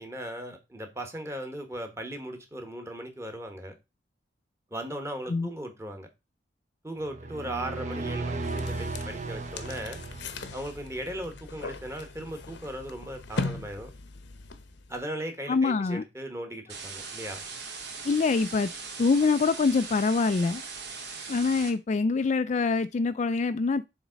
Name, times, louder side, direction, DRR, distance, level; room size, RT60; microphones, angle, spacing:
voice 1, 0.0-3.7 4.7-6.1 6.8-10.0 10.5-13.9 14.9-17.4, right 1 dB, 15° right, 1.3 m, -37 dB
sound 1, 7.0-10.9, right 2 dB, 40° right, 0.9 m, -35 dB
sound 2, 8.4-15.0, left 3 dB, 65° left, 0.8 m, -39 dB
voice 2, 15.5-16.0 18.0-18.7 19.0-20.6 21.3-23.8, left 4 dB, 40° left, 0.3 m, -25 dB
sound 3, 16.7-21.7, right 4 dB, 60° right, 2.0 m, -40 dB
7.2 x 3.6 x 5.1 m
head